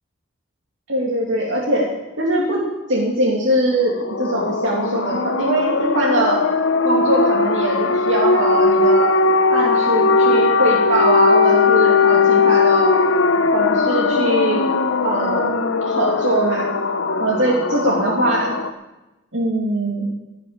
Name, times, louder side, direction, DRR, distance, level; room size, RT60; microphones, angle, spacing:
voice 1, 0.9-1.8 2.2-2.6 2.9-6.4 6.8-9.1 9.5-12.9 13.5-14.6 15.0-15.6 15.8-16.7 17.2-18.5 19.3-20.0, right 1 dB, 65° right, -4 dB, 2.8 m, -21 dB
sound 1, 3.9-18.7, left 4 dB, 70° left, 0.8 m, -18 dB
16.5 x 7.5 x 8.8 m, 1.0 s
head